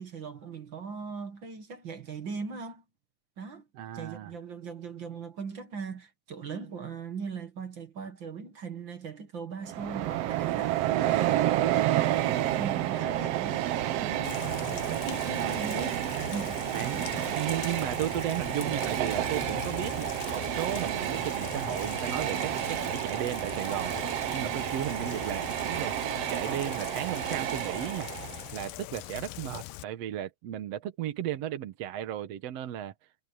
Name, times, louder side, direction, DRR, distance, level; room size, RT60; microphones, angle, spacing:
voice 1, 0.0-2.8 3.4-3.7 3.9-17.4, right 5 dB, 45° right, 2.0 m, -40 dB
voice 2, 3.8-4.3 15.4-15.6 16.7-17.0 17.4-23.9 24.3-25.9 26.3-28.1 28.5-32.9, right 11 dB, 60° right, 1.9 m, -35 dB
Train, 9.6-28.6, right 13 dB, 85° right, 1.4 m, -30 dB
Rain, 14.2-29.8, left 19 dB, 85° left, 2.2 m, -41 dB
omnidirectional pair, 3.8 m